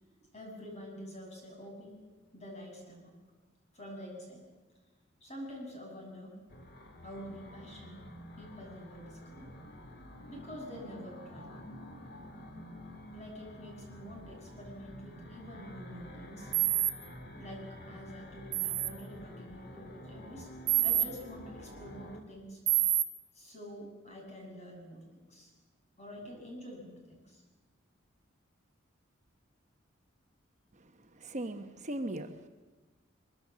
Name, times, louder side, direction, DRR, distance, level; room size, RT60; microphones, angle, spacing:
voice 1, 0.3-1.9 2.3-3.1 3.7-4.4 5.2-6.3 7.0-8.0 8.4-9.5 10.3-11.5 13.1-16.5 17.3-20.5 20.8-22.6 23.3-25.5 26.0-27.4 31.2-31.3, equal, 35° left, 0 dB, 7.6 m, -47 dB
sound 1, 6.5-22.2, equal, 50° left, 2.5 m, -49 dB
sound 2, 16.5-16.9 18.5-18.9 20.7-21.1 22.7-23.0, right 14 dB, 75° right, 1.9 m, -27 dB
voice 2, 30.7-32.5, right 1 dB, 35° right, 6 dB, 1.0 m, -39 dB
23.5 x 23.0 x 7.5 m, 1.3 s
head